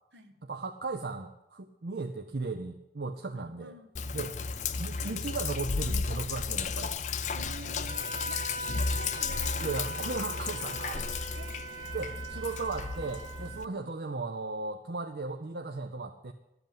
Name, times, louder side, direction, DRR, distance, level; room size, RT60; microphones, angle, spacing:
voice 1, 0.5-3.7 4.1-4.4 4.8-6.9 9.6-11.1 11.9-16.3, right 3 dB, 65° right, 5 dB, 0.7 m, -36 dB
voice 2, 3.3-3.9 4.4-4.5 4.9-5.3 7.3-9.8 10.2-10.3 11.3-12.0 13.6-13.8, right 3 dB, 80° right, 6 dB, 1.5 m, -50 dB
Sink (filling or washing), 4.0-13.7, left 5 dB, 40° left, 0.5 m, -34 dB
Wind instrument woodwind instrument, 7.9-13.7, right 3 dB, 25° right, 1.1 m, -41 dB
12.0 x 8.0 x 9.0 m, 0.89 s
head